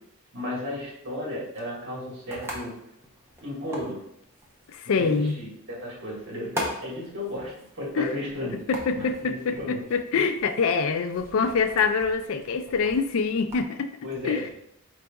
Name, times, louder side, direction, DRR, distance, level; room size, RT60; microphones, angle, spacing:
voice 1, 0.3-2.8 3.4-4.0 4.8-8.6 8.9-9.8 14.0-14.5, left 1 dB, 55° right, -4 dB, 1.6 m, -34 dB
sound 1, 1.4-13.7, equal, 10° right, 0.7 m, -42 dB
voice 2, 4.7-5.4 8.0-8.1 8.7-13.9 14.2-14.5, left 5 dB, 65° left, 8 dB, 0.4 m, -25 dB
4.5 x 4.0 x 2.3 m, 0.77 s
head